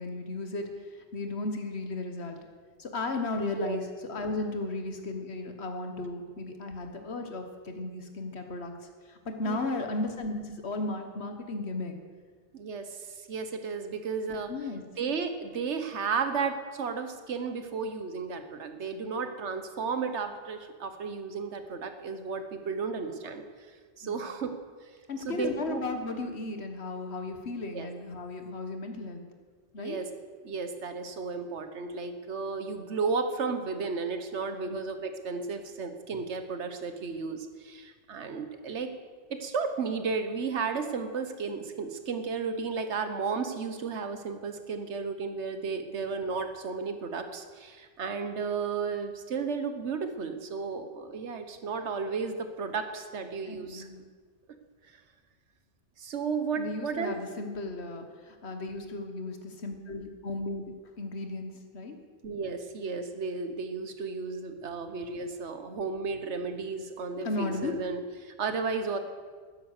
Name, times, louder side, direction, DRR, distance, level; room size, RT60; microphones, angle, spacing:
voice 1, 0.0-2.4 2.8-3.8 4.1-8.7 9.1-11.9 14.5-14.8 24.0-24.3 25.1-29.3 29.7-30.0 34.7-34.8 53.5-54.0 56.6-62.0 67.2-67.8, left 2 dB, 65° left, 6 dB, 1.6 m, -35 dB
voice 2, 12.5-14.5 15.0-23.4 24.0-24.6 25.2-25.8 27.7-27.9 29.8-30.1 30.4-38.9 39.3-53.9 56.0-57.2 62.2-69.0, right 5 dB, 75° right, 8 dB, 1.4 m, -33 dB
12.0 x 10.5 x 6.6 m, 1.5 s
omnidirectional pair, 1.2 m